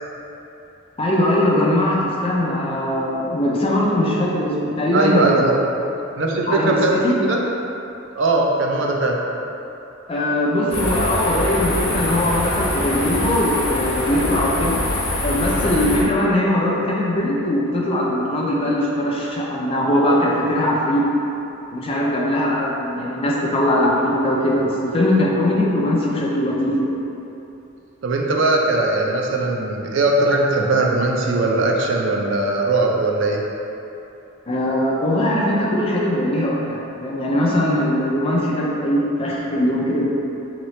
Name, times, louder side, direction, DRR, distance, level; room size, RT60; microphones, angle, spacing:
voice 1, 1.0-5.4 6.5-7.2 10.1-14.8 15.2-21.1 21.7-26.9 34.5-40.1, left 1 dB, 25° left, -4 dB, 0.4 m, -20 dB
voice 2, 4.9-5.6 6.2-7.4 8.2-9.2 28.0-33.4, right 2 dB, 60° right, -1 dB, 0.4 m, -19 dB
sound 1, 10.7-16.0, left 1 dB, 80° left, 0.9 m, -23 dB
3.7 x 2.9 x 3.1 m, 2.9 s
head